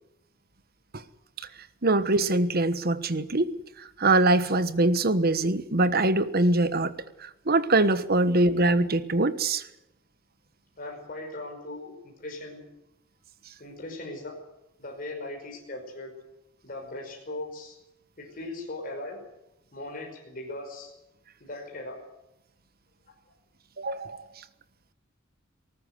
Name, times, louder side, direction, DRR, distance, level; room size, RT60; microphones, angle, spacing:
voice 1, 1.8-3.5 3.8-6.9 7.2-9.7 23.8-24.3, right 2 dB, 50° right, 13 dB, 1.3 m, -23 dB
voice 2, 10.8-12.7 13.6-14.4 14.8-16.1 16.6-17.8 18.2-19.2 19.7-20.9 21.4-22.0, left 2 dB, 45° left, 1 dB, 5.4 m, -39 dB
19.5 x 19.0 x 8.0 m, 0.87 s
head